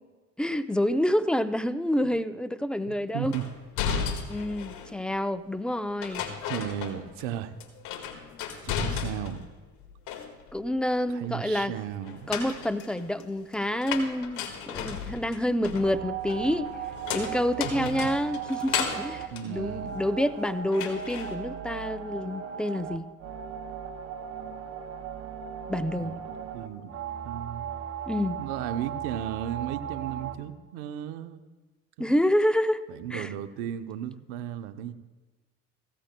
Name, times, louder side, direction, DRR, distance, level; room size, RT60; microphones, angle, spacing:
voice 1, 0.4-3.3 4.3-6.2 10.5-11.7 12.3-14.4 14.7-16.7 17.1-23.0 25.7-26.2 28.1-28.4 32.0-32.8 33.1-33.3, left 1 dB, 5° left, 11 dB, 0.6 m, -28 dB
voice 2, 2.9-3.5 6.5-7.6 8.6-9.4 11.1-12.3 17.8-18.1 19.3-20.0 26.0-27.0 27.2-27.6 28.4-31.4 32.9-34.9, right 11 dB, 85° right, 9 dB, 0.8 m, -35 dB
sound 1, 3.3-5.0 6.0-7.3 7.6-9.5 9.8-10.6 12.0-20.3 20.7-21.3, left 7 dB, 75° left, 1.7 m, -34 dB
sound 2, 15.8-30.3, right 8 dB, 50° right, 1.4 m, -37 dB
18.0 x 15.5 x 2.2 m, 1.3 s
supercardioid pair, 75°, 31 cm